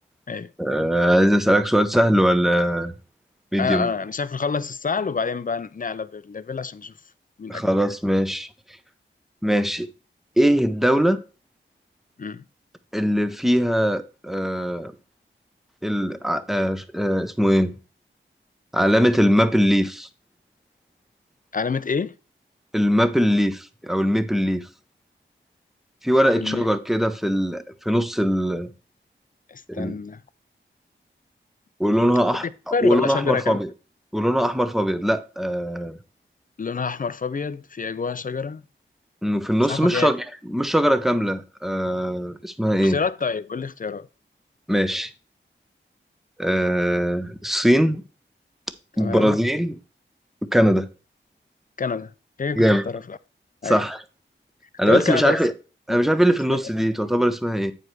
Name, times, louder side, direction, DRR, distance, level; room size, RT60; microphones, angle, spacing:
voice 1, 0.6-2.9 3.5-3.9 7.5-8.5 9.4-9.9 10.4-11.2 12.9-14.9 15.8-17.7 18.7-20.1 22.7-24.7 26.0-28.7 29.7-30.0 31.8-32.4 32.8-33.7 34.1-36.0 39.2-43.0 44.7-45.1 46.4-48.0 49.0-49.8 50.5-50.9 52.5-52.8 53.6-54.0 54.8-55.5 55.9-57.7, equal, ahead, 0.8 m, -21 dB
voice 2, 3.6-6.9 7.4-7.6 12.2-12.4 21.5-22.1 26.3-26.7 29.5-30.2 32.4-33.6 36.6-38.6 39.7-40.1 42.8-44.1 49.0-49.4 51.8-52.1 52.4-53.2 53.6-53.8 54.9-55.4 55.9-56.0 56.5-56.6, left 5 dB, 40° left, 0.6 m, -27 dB
8.8 x 4.9 x 4.7 m
wide cardioid pair, 80°, 20 cm